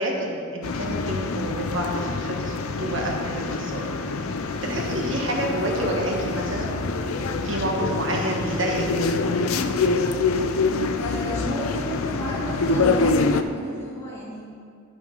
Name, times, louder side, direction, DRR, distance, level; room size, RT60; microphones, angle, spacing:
voice 1, 0.0-3.9 4.6-6.7 7.4-8.8, right 1 dB, 65° right, -1 dB, 1.4 m, -28 dB
sound 1, 0.6-13.4, left 3 dB, 85° left, 0.5 m, -25 dB
voice 2, 10.5-14.5, equal, 15° left, -8 dB, 2.5 m, -33 dB
11.0 x 6.3 x 5.2 m, 2.3 s
head